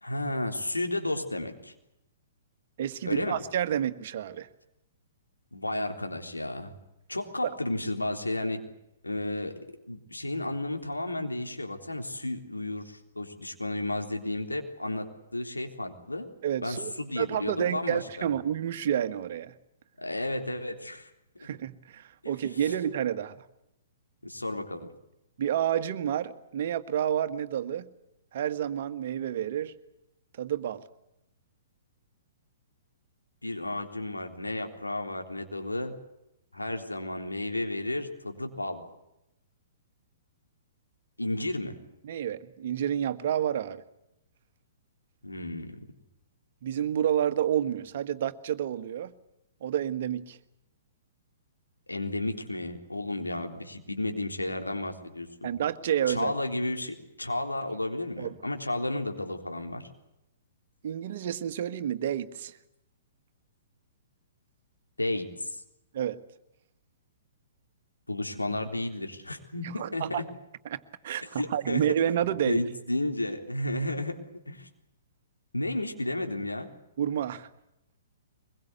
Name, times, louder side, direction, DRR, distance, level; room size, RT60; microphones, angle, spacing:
voice 1, 0.0-1.7 3.0-3.4 5.5-6.7 7.1-8.6 9.0-9.6 9.9-15.1 15.3-16.3 16.6-18.3 20.0-21.1 21.4-21.6 22.2-22.7 24.2-24.9 33.4-35.9 36.5-38.8 41.2-41.8 45.2-45.8 51.9-55.5 56.1-59.8 65.0-65.6 68.1-70.2 71.4-71.8 72.1-74.2 74.5-74.7 75.5-76.7, left 1 dB, 85° left, 4 dB, 3.7 m, -32 dB
voice 2, 2.8-4.5 16.4-19.5 21.4-23.4 25.4-27.9 28.3-29.7 30.4-30.8 42.0-43.8 46.6-49.1 49.6-50.4 55.4-56.3 58.2-58.4 60.8-62.5 65.9-66.2 69.8-70.2 70.7-72.6 77.0-77.5, right 10 dB, 50° right, 11 dB, 1.6 m, -29 dB
23.5 x 22.0 x 8.3 m, 0.86 s
figure-of-eight pair, 115°, 0 cm